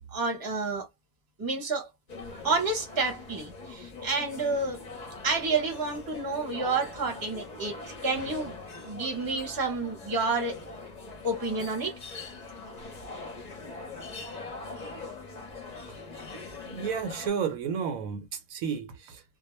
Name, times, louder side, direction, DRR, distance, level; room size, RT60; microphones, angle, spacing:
voice 1, 0.1-0.9 1.4-1.9 2.4-4.8 5.2-7.8 8.0-8.6 8.8-10.7 11.2-12.0, right 3 dB, 20° right, 0.7 m, -29 dB
sound 1, 2.1-17.3, left 3 dB, 40° left, 0.7 m, -42 dB
voice 2, 16.6-19.2, right 7 dB, 80° right, 1.0 m, -32 dB
2.2 x 2.2 x 3.0 m
omnidirectional pair, 1.5 m